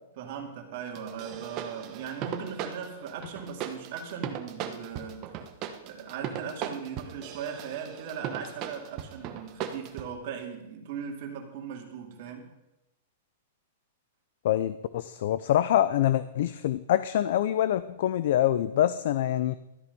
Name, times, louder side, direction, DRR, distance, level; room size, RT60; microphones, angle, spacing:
voice 1, 0.2-5.3 5.8-12.5, right 7 dB, 45° right, 2 dB, 2.4 m, -39 dB
sound 1, 0.9-10.1, right 9 dB, 30° right, 1.1 m, -38 dB
voice 2, 14.4-19.5, left 12 dB, 55° left, 14 dB, 0.5 m, -25 dB
13.5 x 10.5 x 5.4 m, 0.93 s
supercardioid pair, 165°, 0 cm